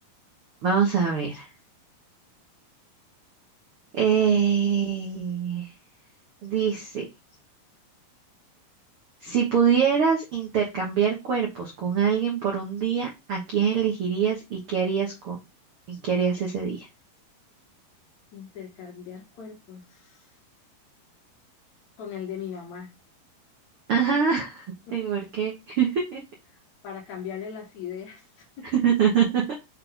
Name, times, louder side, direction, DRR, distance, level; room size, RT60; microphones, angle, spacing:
voice 1, 0.6-1.5 3.9-5.7 6.4-7.1 9.2-15.4 15.9-16.9 23.9-24.6 24.9-26.2 28.7-29.5, right 7 dB, 75° right, 1.2 m, -24 dB
voice 2, 18.3-20.4 22.0-22.9 24.9-25.0 26.8-28.7, left 7 dB, 60° left, 2.1 m, -39 dB
6.5 x 4.3 x 3.3 m
omnidirectional pair, 4.6 m